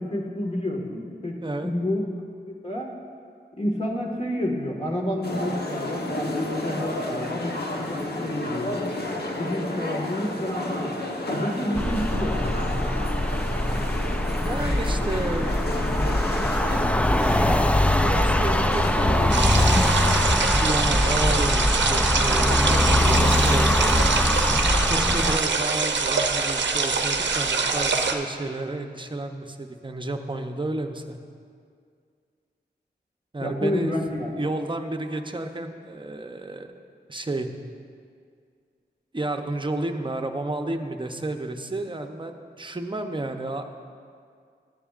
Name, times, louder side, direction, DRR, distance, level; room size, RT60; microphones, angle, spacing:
voice 1, 0.0-1.3 1.6-2.0 2.6-2.9 3.6-7.5 7.8-8.9 9.3-10.9 11.3-12.7 33.4-34.3, left 1 dB, 35° left, -1 dB, 1.7 m, -29 dB
voice 2, 1.4-1.7 14.4-15.5 17.4-24.1 24.9-31.2 33.3-33.9 34.4-36.7 37.1-37.5 39.1-43.6, right 2 dB, 25° right, 5 dB, 0.8 m, -31 dB
sound 1, 5.2-19.3, left 1 dB, 60° left, 1.1 m, -31 dB
sound 2, 11.8-25.4, left 1 dB, 5° left, 0.3 m, -22 dB
sound 3, 19.3-28.2, right 4 dB, 85° right, 0.7 m, -24 dB
14.5 x 10.0 x 2.5 m, 2.2 s
cardioid pair, 50°, 18 cm